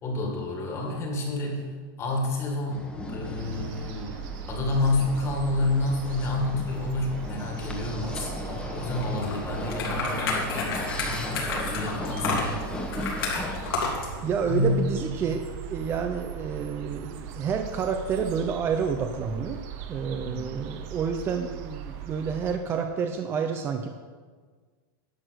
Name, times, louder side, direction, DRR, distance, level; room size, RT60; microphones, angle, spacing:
voice 1, 0.0-1.7 2.0-4.2 4.5-12.7 14.1-15.1 20.2-20.4, left 2 dB, 25° left, 0 dB, 1.9 m, -29 dB
sound 1, 2.7-13.8, left 1 dB, 10° left, 1.2 m, -37 dB
sound 2, 3.4-22.6, right 7 dB, 45° right, 0.9 m, -39 dB
sound 3, 9.0-14.1, left 4 dB, 90° left, 3.3 m, -31 dB
voice 2, 14.2-19.6 19.9-23.9, right 6 dB, 20° right, 5 dB, 0.5 m, -29 dB
11.0 x 6.2 x 6.3 m, 1.5 s
supercardioid pair, 155°, 12 cm